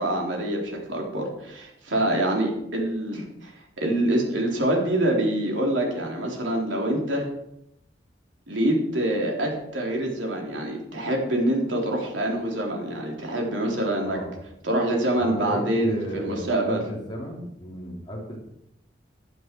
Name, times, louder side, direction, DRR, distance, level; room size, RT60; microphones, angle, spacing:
voice 1, 0.0-3.5 3.8-7.3 8.5-14.2 14.6-16.8, right 1 dB, 90° right, 0 dB, 3.5 m, -25 dB
voice 2, 14.0-14.3 15.2-18.4, equal, 25° left, -2 dB, 3.4 m, -34 dB
15.5 x 10.0 x 4.6 m, 0.81 s
head